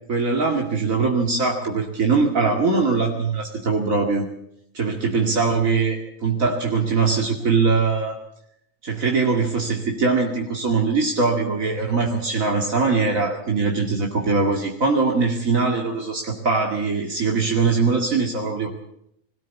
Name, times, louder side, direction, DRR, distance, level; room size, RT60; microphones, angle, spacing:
voice 1, 0.1-4.3 4.7-8.2 8.8-18.7, right 4 dB, 70° right, 1 dB, 2.7 m, -21 dB
21.5 x 17.0 x 8.3 m, 0.75 s
omnidirectional pair, 1.4 m